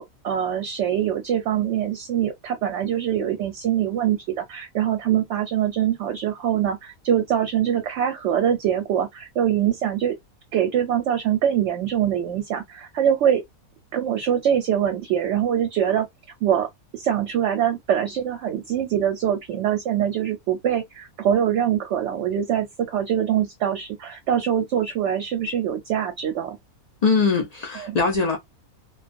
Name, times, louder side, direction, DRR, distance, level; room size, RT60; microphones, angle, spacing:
voice 1, 0.0-10.1 10.5-13.4 13.9-16.1 16.4-16.7 16.9-26.6 27.8-28.0, right 9 dB, 65° right, 0.8 m, -23 dB
voice 2, 27.0-28.4, left 4 dB, 80° left, 0.3 m, -21 dB
2.3 x 2.2 x 2.5 m
omnidirectional pair, 1.5 m